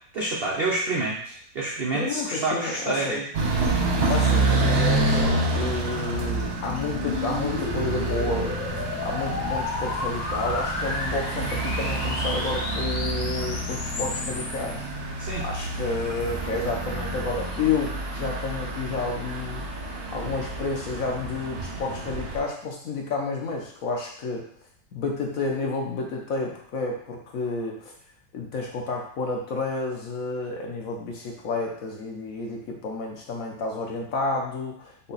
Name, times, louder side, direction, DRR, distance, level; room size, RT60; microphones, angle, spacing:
voice 1, 0.1-3.3 15.2-15.4, right 2 dB, 85° right, -3 dB, 0.5 m, -28 dB
voice 2, 1.9-3.2 4.1-8.7 9.0-14.9 15.4-19.7 20.1-24.4 24.9-27.9 28.3-35.1, left 3 dB, 60° left, 0 dB, 1.0 m, -30 dB
sound 1, 3.3-22.4, right 2 dB, 45° right, 0.8 m, -28 dB
sound 2, 5.9-14.7, left 4 dB, 90° left, 1.3 m, -33 dB
5.6 x 2.3 x 4.0 m, 0.63 s
omnidirectional pair, 1.9 m